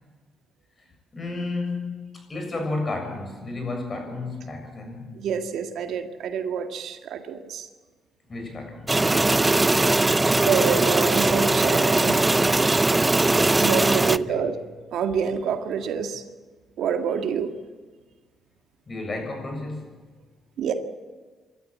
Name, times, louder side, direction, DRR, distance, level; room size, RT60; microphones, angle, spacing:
voice 1, 1.1-5.3 8.3-9.1 14.1-14.6 18.9-19.9, left 2 dB, 30° left, 3 dB, 7.1 m, -32 dB
voice 2, 5.2-7.7 10.4-12.2 13.6-14.6 14.9-16.2 16.8-17.5 20.6-20.7, right 7 dB, 75° right, 6 dB, 1.8 m, -27 dB
sound 1, 8.9-14.2, right 2 dB, 15° right, 0.6 m, -20 dB
27.0 x 12.5 x 8.5 m, 1.4 s
cardioid pair, 90°, 0 cm